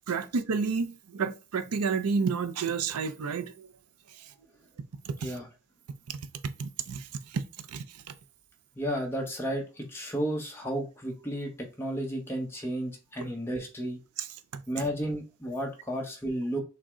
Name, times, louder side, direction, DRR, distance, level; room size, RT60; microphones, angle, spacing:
voice 1, 0.1-3.7 4.1-4.3 5.0-5.3 6.4-7.4 7.7-8.2 13.2-13.3 14.2-14.6, right 5 dB, 90° right, 0.5 m, -31 dB
voice 2, 8.7-14.0 14.7-16.6, equal, 10° left, 0.9 m, -33 dB
6.1 x 2.2 x 3.7 m
head